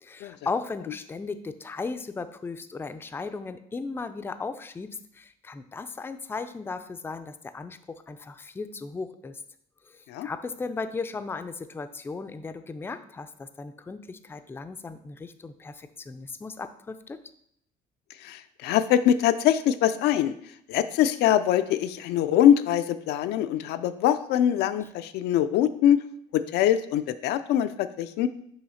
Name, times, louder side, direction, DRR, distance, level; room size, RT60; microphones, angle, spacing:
voice 1, 0.0-9.4 9.9-17.2, left 4 dB, 15° left, 10 dB, 0.4 m, -36 dB
voice 2, 18.2-20.3 20.7-26.0 26.3-28.3, left 10 dB, 80° left, 11 dB, 0.4 m, -23 dB
5.7 x 3.1 x 5.6 m, 0.70 s
cardioid pair, 110°, 17 cm